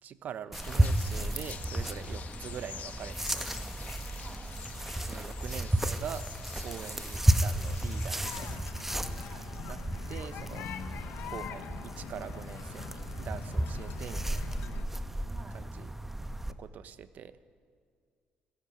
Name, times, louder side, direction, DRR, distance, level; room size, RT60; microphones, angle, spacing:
voice 1, 0.0-3.5 4.9-6.2 6.6-8.6 9.6-9.8 10.1-10.7 11.0-14.6 15.5-15.9 16.5-17.4, right 8 dB, 65° right, 13 dB, 1.1 m, -44 dB
sound 1, 0.5-8.6, left 8 dB, 60° left, 1.6 m, -47 dB
sound 2, 0.5-16.5, right 1 dB, 10° right, 1.1 m, -33 dB
voice 2, 2.2-2.3 4.1-4.4 6.8-6.9 9.2-9.5 11.0-11.2 15.3-15.6, right 1 dB, 35° right, 6 dB, 4.2 m, -52 dB
sound 3, 8.2-14.8, left 9 dB, 85° left, 1.2 m, -44 dB
29.0 x 13.5 x 9.2 m, 2.1 s
cardioid pair, 95°, 3 cm